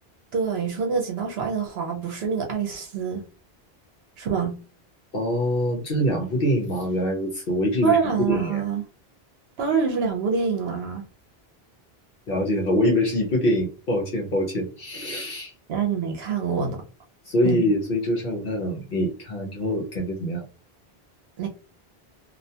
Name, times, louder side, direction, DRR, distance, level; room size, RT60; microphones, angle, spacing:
voice 1, 0.3-3.2 4.2-4.6 7.8-8.8 9.6-11.0 15.7-16.8 17.4-17.7 21.4-21.5, right 6 dB, 75° right, 0.8 m, -26 dB
voice 2, 5.1-8.0 8.3-8.6 12.3-15.5 17.2-20.5, equal, 65° left, 0.8 m, -24 dB
2.3 x 2.1 x 2.7 m
omnidirectional pair, 1.1 m